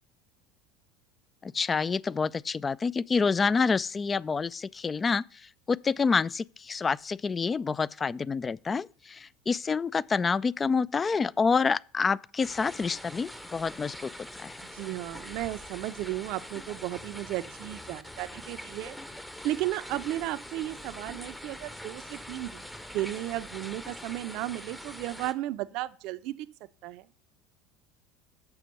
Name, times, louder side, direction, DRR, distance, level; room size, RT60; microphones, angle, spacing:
voice 1, 1.4-5.2 5.7-14.1 14.4-14.6, left 5 dB, 25° left, 0.3 m, -27 dB
sound 1, 12.4-25.3, equal, 5° left, 0.8 m, -44 dB
voice 2, 14.7-19.0 19.4-22.7 22.9-26.4 26.8-27.1, right 15 dB, 55° right, 0.5 m, -34 dB
7.0 x 5.8 x 6.7 m
hypercardioid pair, 70°, 0 cm